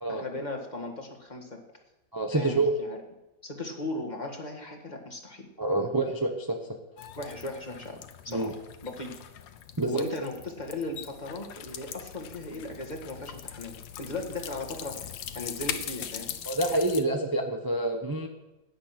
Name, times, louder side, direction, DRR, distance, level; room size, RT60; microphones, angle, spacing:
voice 1, 0.1-1.6 2.3-3.0 3.4-5.5 7.2-8.0 8.2-8.6 8.8-9.2 9.9-15.1 15.3-16.3, left 2 dB, 25° left, 2 dB, 1.8 m, -37 dB
voice 2, 2.1-2.7 5.6-6.6 8.3-8.5 9.8-10.0 16.5-18.3, right 2 dB, 15° right, 3 dB, 0.7 m, -27 dB
sound 1, 7.0-17.0, left 9 dB, 75° left, 1.6 m, -41 dB
16.5 x 10.5 x 6.0 m, 1.0 s
omnidirectional pair, 2.0 m